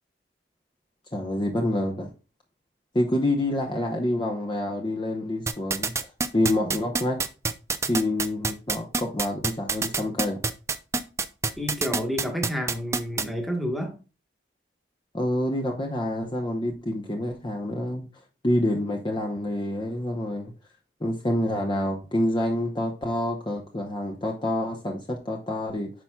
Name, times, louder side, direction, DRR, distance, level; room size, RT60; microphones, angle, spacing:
voice 1, 1.1-2.1 2.9-6.1 6.3-7.2 7.8-10.4 15.1-18.1 18.4-20.5 21.0-25.9, left 1 dB, 25° left, 0.8 m, -27 dB
sound 1, 5.5-13.2, right 4 dB, 15° right, 0.4 m, -26 dB
voice 2, 11.6-13.9, equal, ahead, 1.3 m, -29 dB
9.7 x 5.8 x 2.3 m
head